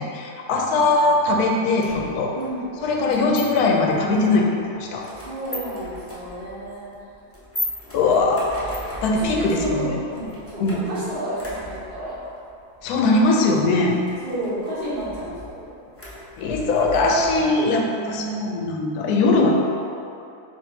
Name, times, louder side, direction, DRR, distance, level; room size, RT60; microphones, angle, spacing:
voice 1, 0.0-2.3 2.8-4.5 4.7-5.1 7.9-8.5 9.0-10.0 10.6-10.9 12.8-14.0 16.4-19.5, left 3 dB, 85° left, 0 dB, 1.1 m, -20 dB
sound 1, 1.8-17.6, left 1 dB, 15° left, 0.4 m, -38 dB
voice 2, 2.3-2.7 3.0-3.4 5.1-6.9 7.8-8.2 8.9-12.3 14.2-15.6 17.9-18.5, right 1 dB, 40° right, -12 dB, 1.6 m, -31 dB
5.1 x 2.7 x 3.9 m, 2.6 s
omnidirectional pair, 1.6 m